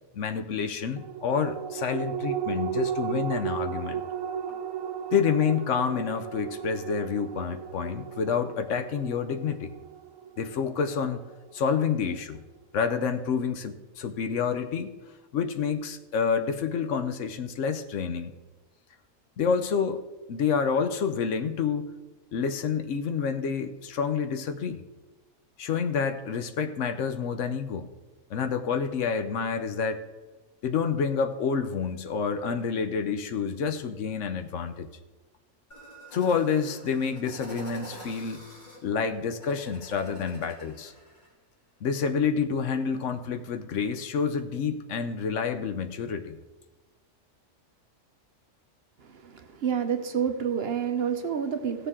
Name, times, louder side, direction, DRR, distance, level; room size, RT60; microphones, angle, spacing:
voice 1, 0.2-4.0 5.1-9.7 10.4-11.2 11.5-12.4 12.7-14.9 15.3-18.3 19.4-20.0 20.3-21.9 22.3-24.8 25.6-27.9 28.3-30.0 30.6-34.9 36.1-38.4 38.8-40.9 41.8-46.4, left 6 dB, 70° left, 9 dB, 1.0 m, -28 dB
sound 1, 1.0-11.8 12.2-12.3, right 9 dB, 90° right, 1.0 m, -35 dB
sound 2, 35.7-41.3, equal, 35° left, 2.3 m, -47 dB
voice 2, 49.1-51.9, right 7 dB, 55° right, 7 dB, 0.9 m, -29 dB
16.5 x 6.8 x 3.7 m, 1.1 s
omnidirectional pair, 1.3 m